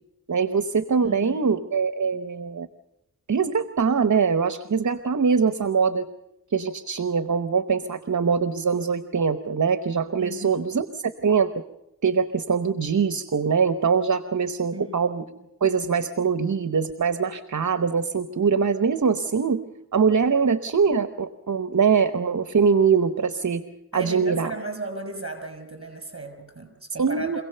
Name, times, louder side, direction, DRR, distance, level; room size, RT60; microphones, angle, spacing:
voice 1, 0.3-2.7 3.3-6.1 6.5-11.5 12.0-15.2 15.6-19.6 19.9-23.6 23.9-24.5 27.0-27.4, right 5 dB, 60° right, 11 dB, 0.9 m, -23 dB
voice 2, 1.0-1.6 10.2-10.7 14.7-15.5 23.9-27.4, right 3 dB, 40° right, 6 dB, 6.1 m, -36 dB
26.0 x 17.0 x 6.7 m, 0.92 s
wide cardioid pair, 70°, 34 cm